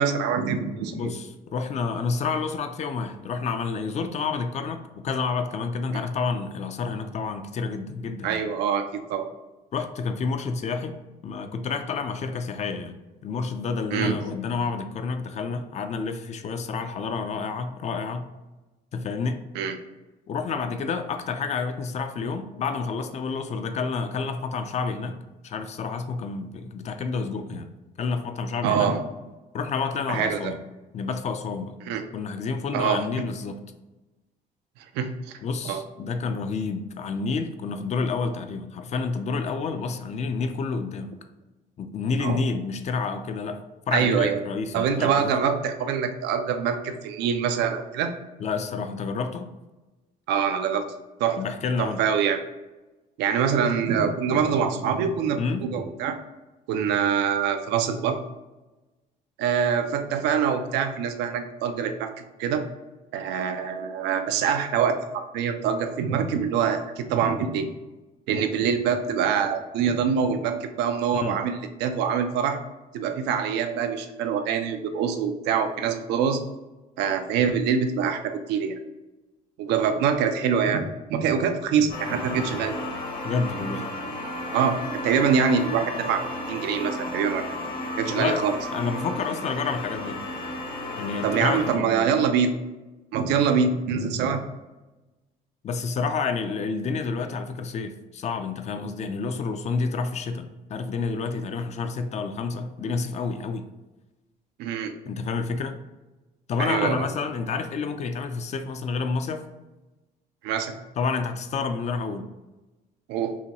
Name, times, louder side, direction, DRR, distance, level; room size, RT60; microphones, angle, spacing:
voice 1, 0.0-1.1 8.2-9.3 13.9-14.3 19.5-19.8 28.6-29.0 30.1-30.5 31.9-32.0 32.7-33.1 34.9-35.1 35.6-35.8 42.2-42.4 43.9-44.4 44.7-48.1 50.3-50.9 51.2-51.4 51.8-52.4 53.2-56.2 56.7-58.2 59.4-62.1 62.4-62.6 63.1-65.0 65.3-67.7 68.3-72.6 72.9-76.4 77.0-78.8 79.6-82.8 84.5-84.8 85.0-87.5 88.0-88.5 91.2-92.5 93.1-94.4 104.6-104.9 106.6-107.0 110.4-110.7 113.1-113.3, right 7 dB, 90° right, 7 dB, 0.5 m, -24 dB
voice 2, 0.9-8.4 9.7-11.0 11.2-18.3 18.9-19.4 20.3-27.7 28.0-28.9 29.5-30.6 30.9-31.8 32.1-33.6 35.4-41.1 41.8-45.4 48.4-49.5 51.4-52.0 55.4-55.6 71.1-71.4 83.2-83.9 88.1-88.4 88.7-90.2 91.0-92.1 95.6-103.7 105.1-105.8 106.5-109.5 111.0-112.3, left 4 dB, 40° left, 8 dB, 0.4 m, -29 dB
sound 1, 81.9-91.8, left 1 dB, 60° left, 1.1 m, -33 dB
5.6 x 2.2 x 2.9 m, 1.1 s
cardioid pair, 110°, 17 cm